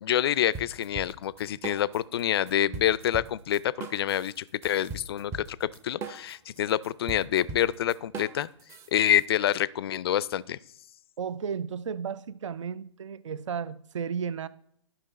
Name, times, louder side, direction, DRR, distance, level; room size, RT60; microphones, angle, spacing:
voice 1, 0.0-8.5 8.9-10.6, left 11 dB, 50° left, 0.4 m, -27 dB
sound 1, 0.5-2.2 2.5-9.3, right 4 dB, 15° right, 0.6 m, -40 dB
voice 2, 11.2-14.5, right 6 dB, 70° right, 0.5 m, -33 dB
11.5 x 5.8 x 4.1 m
figure-of-eight pair, 130°, 16 cm